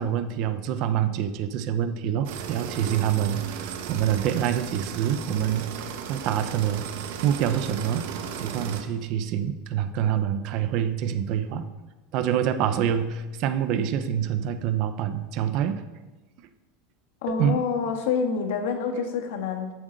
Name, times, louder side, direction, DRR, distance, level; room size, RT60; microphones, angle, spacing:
voice 1, 0.0-6.9 7.2-8.1 8.4-11.6 12.1-15.8 17.3-17.6, right 9 dB, 40° right, 11 dB, 0.6 m, -26 dB
sound 1, 2.2-8.8, right 7 dB, 65° right, 1.1 m, -36 dB
voice 2, 17.2-19.7, left 6 dB, 70° left, 6 dB, 1.5 m, -27 dB
14.0 x 7.8 x 3.9 m, 1.2 s
supercardioid pair, 175°, 0 cm